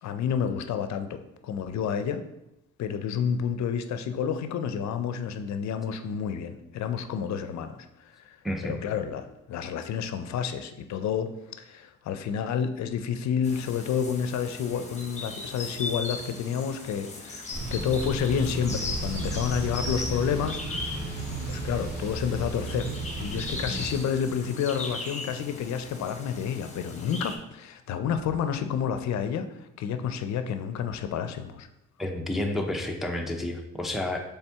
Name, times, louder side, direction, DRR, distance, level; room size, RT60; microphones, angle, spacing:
voice 1, 0.0-2.2 2.8-8.4 8.6-17.4 17.7-21.2 21.5-22.9 23.2-31.7, left 7 dB, 65° left, 9 dB, 0.5 m, -30 dB
voice 2, 8.4-8.8 32.0-34.2, left 1 dB, ahead, 2 dB, 0.5 m, -30 dB
sound 1, 13.4-27.4, left 3 dB, 25° left, 0.8 m, -38 dB
Thunder / Bicycle, 17.5-24.0, right 2 dB, 70° right, 1.6 m, -34 dB
4.2 x 3.5 x 3.4 m, 0.87 s
cardioid pair, 90°, 30 cm